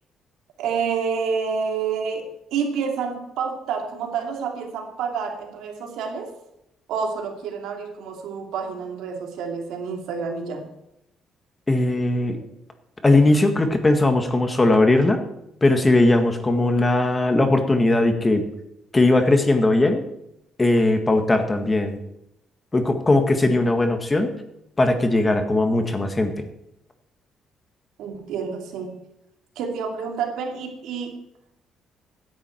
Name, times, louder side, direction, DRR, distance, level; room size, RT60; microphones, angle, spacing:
voice 1, 0.6-6.3 6.9-10.7 28.0-28.9 29.6-31.1, right 6 dB, 90° right, 3 dB, 2.7 m, -28 dB
voice 2, 11.7-12.4 13.0-15.2 15.6-18.4 18.9-20.0 20.6-22.0 22.7-24.3 24.8-26.5, left 2 dB, 20° left, 6 dB, 1.8 m, -19 dB
16.0 x 10.0 x 4.6 m, 0.83 s
cardioid pair, 115°, 0 cm